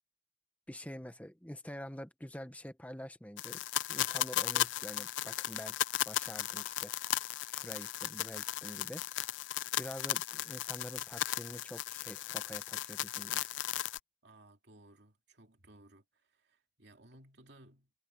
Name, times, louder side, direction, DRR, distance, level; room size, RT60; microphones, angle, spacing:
voice 1, 0.7-3.6 3.9-5.8 6.1-6.9 7.5-9.0 9.8-13.5, equal, 10° left, 1.2 m, -46 dB
sound 1, 3.4-14.0, left 13 dB, 85° left, 0.4 m, -36 dB
voice 2, 14.2-17.9, right 1 dB, 65° right, 2.9 m, -60 dB
head